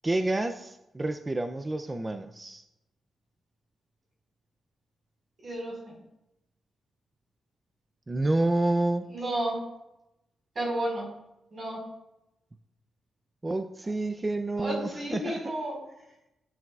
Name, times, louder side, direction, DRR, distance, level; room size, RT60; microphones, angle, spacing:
voice 1, 0.0-2.6 8.1-9.1 13.4-15.5, right 2 dB, 15° right, 7 dB, 0.4 m, -29 dB
voice 2, 5.4-5.8 9.1-9.6 10.5-11.1 11.5-11.8 14.6-15.7, right 1 dB, 35° right, -2 dB, 4.6 m, -31 dB
16.0 x 10.5 x 2.4 m, 0.90 s
wide cardioid pair, 165°, 0 cm